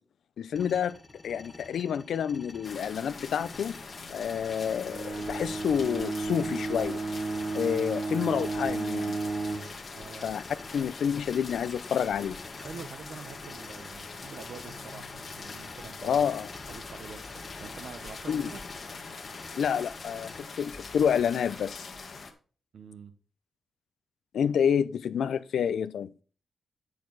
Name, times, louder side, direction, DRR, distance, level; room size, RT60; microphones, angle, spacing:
voice 1, 0.4-0.9 1.2-3.8 4.1-7.0 7.5-9.2 10.2-10.4 10.7-12.4 16.0-16.5 18.3-18.5 19.6-21.9 24.3-26.1, left 8 dB, 85° left, 0.5 m, -28 dB
sound 1, 0.6-20.4, left 2 dB, 25° left, 1.1 m, -50 dB
sound 2, 2.6-22.3, left 4 dB, 40° left, 1.4 m, -43 dB
Bowed string instrument, 4.9-9.8, right 3 dB, 40° right, 0.7 m, -33 dB
voice 2, 9.9-10.3 12.6-17.3 17.6-18.6 22.7-23.1, right 6 dB, 70° right, 1.1 m, -46 dB
8.6 x 6.7 x 4.0 m
wide cardioid pair, 135°, 0 cm